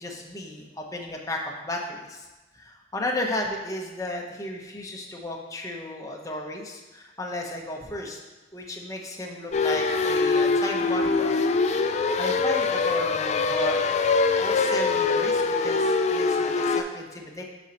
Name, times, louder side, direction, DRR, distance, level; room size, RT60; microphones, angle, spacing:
voice 1, 0.0-2.3 2.5-8.2 8.5-11.4 11.8-13.9 14.4-17.4, left 1 dB, 20° left, 0 dB, 0.8 m, -34 dB
sound 1, 9.5-16.8, left 4 dB, 35° left, 0.3 m, -23 dB
9.0 x 5.1 x 2.9 m, 1.1 s
head